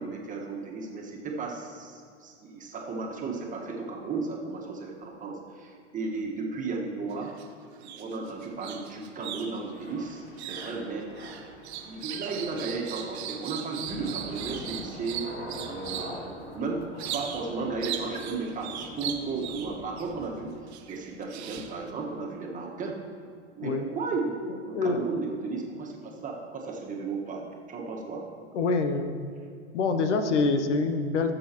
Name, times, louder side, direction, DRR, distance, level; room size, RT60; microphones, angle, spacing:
voice 1, 0.0-7.3 7.8-11.1 11.7-15.3 15.6-20.5 20.9-23.0 23.5-28.3, right 4 dB, 20° right, -1 dB, 1.6 m, -34 dB
sound 1, 7.1-7.5 7.8-16.2 17.0-17.5 17.8-20.1 20.7-21.9, right 9 dB, 60° right, 1.0 m, -39 dB
Thunder / Rain, 9.7-20.5, left 1 dB, 30° left, 2.7 m, -44 dB
voice 2, 24.7-25.1 28.5-29.3 29.7-31.4, left 3 dB, 75° left, 8 dB, 0.9 m, -26 dB
16.0 x 7.6 x 3.0 m, 2.3 s
hypercardioid pair, 110°, 36 cm